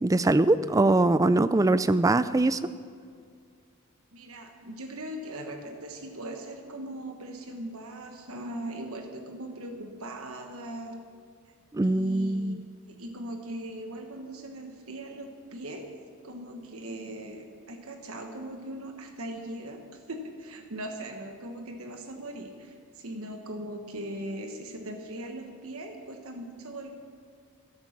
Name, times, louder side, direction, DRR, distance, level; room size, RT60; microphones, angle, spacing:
voice 1, 0.0-2.6 11.7-12.6, right 2 dB, 15° right, 14 dB, 0.3 m, -22 dB
voice 2, 4.1-11.0 11.8-12.5 12.8-16.0 16.2-26.9, right 1 dB, 75° right, 4 dB, 1.3 m, -39 dB
13.5 x 12.5 x 5.9 m, 2.2 s
head